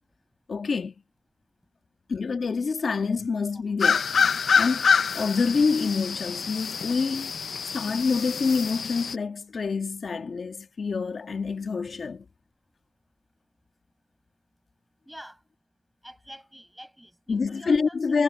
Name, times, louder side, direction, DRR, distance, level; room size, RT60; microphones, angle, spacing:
voice 1, 0.5-0.9 2.1-4.1 4.6-7.3 7.7-12.2 17.3-18.2, left 4 dB, 60° left, 1.6 m, -27 dB
sound 1, 3.8-9.2, left 6 dB, 75° left, 0.4 m, -26 dB
voice 2, 15.1-15.4 16.0-18.2, equal, 5° right, 5.9 m, -47 dB
wide cardioid pair, 105°, 0 cm